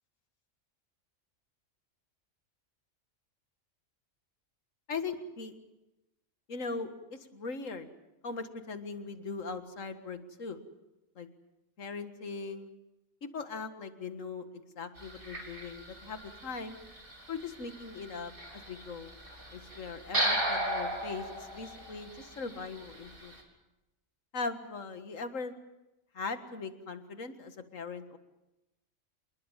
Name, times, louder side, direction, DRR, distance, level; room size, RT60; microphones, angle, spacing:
voice 1, 4.9-5.5 6.5-7.9 8.2-10.6 11.2-11.3 11.8-12.7 13.2-16.8 17.3-19.1 19.5-23.3 24.3-25.6 26.1-28.2, left 4 dB, 70° left, 9 dB, 2.1 m, -40 dB
sound 1, 15.0-23.4, right 1 dB, 40° right, 4.2 m, -37 dB
27.0 x 20.5 x 7.4 m, 0.96 s
omnidirectional pair, 1.4 m